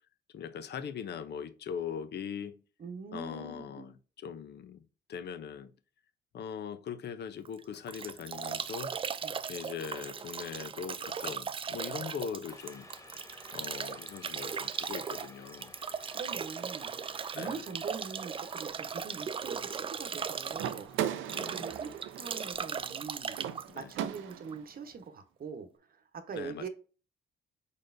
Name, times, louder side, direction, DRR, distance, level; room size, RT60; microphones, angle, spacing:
voice 1, 0.3-2.6 3.1-4.8 5.1-5.7 6.3-9.0 9.5-12.9 13.5-15.7 17.3-17.6 21.3-21.7 23.7-23.9 26.3-26.7, left 7 dB, 60° left, 0.6 m, -41 dB
voice 2, 2.8-3.9 9.2-9.3 16.1-17.0 17.3-20.9 21.3-21.9 22.2-23.4 23.8-26.7, right 5 dB, 50° right, 1.0 m, -43 dB
Bathtub (filling or washing) / Drip / Trickle dribble, 7.5-24.7, right 6 dB, 25° right, 0.3 m, -38 dB
sound 1, 12.5-24.5 24.9-25.0, left 2 dB, 15° left, 0.7 m, -56 dB
sound 2, 20.6-24.7, right 10 dB, 80° right, 0.5 m, -38 dB
5.1 x 4.1 x 2.6 m
cardioid pair, 90°, 20 cm